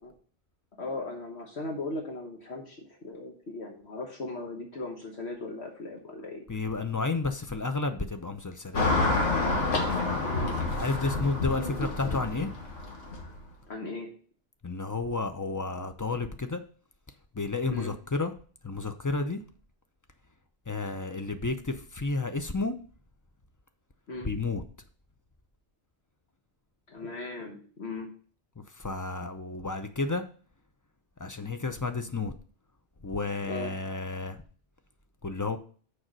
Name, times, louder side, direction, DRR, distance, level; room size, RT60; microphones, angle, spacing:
voice 1, 0.8-6.4 10.2-10.6 11.0-11.1 11.6-11.9 13.7-14.1 17.7-17.9 24.1-24.3 26.9-28.1 33.4-33.7, left 2 dB, 65° left, 1.4 m, -38 dB
voice 2, 6.5-8.9 10.7-12.5 14.6-16.6 17.3-18.3 18.6-19.4 20.7-22.8 24.2-24.6 28.6-30.3 31.2-32.3 33.0-34.4 35.2-35.6, left 3 dB, 30° left, 0.3 m, -31 dB
Car passing by / Traffic noise roadway noise, 8.7-13.4, left 3 dB, 90° left, 1.8 m, -28 dB
6.5 x 4.8 x 6.1 m
omnidirectional pair, 1.2 m